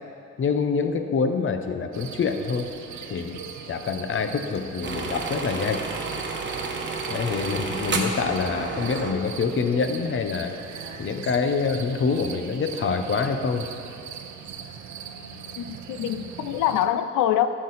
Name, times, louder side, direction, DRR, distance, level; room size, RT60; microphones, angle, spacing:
voice 1, 0.4-2.7 3.0-5.8 7.1-10.5 11.0-13.7, left 5 dB, 40° left, 7 dB, 0.8 m, -26 dB
sound 1, 1.9-16.9, right 7 dB, 70° right, 0.7 m, -40 dB
sound 2, 4.8-9.1, right 3 dB, 40° right, 1.1 m, -31 dB
voice 2, 15.6-17.5, left 11 dB, 85° left, 11 dB, 0.5 m, -24 dB
11.0 x 6.7 x 4.1 m, 2.8 s
cardioid pair, 90°, 30 cm